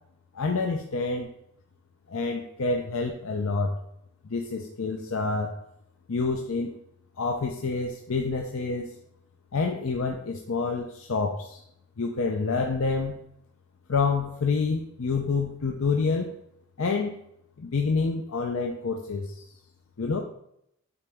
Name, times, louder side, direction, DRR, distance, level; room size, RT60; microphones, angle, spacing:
voice 1, 0.3-1.3 2.1-3.8 4.2-5.5 6.1-6.7 7.2-8.9 9.5-11.6 12.0-13.2 13.9-16.3 16.8-17.1 17.6-19.5 20.0-20.2, left 4 dB, 70° left, 2 dB, 0.6 m, -27 dB
8.7 x 3.9 x 3.5 m, 0.74 s
head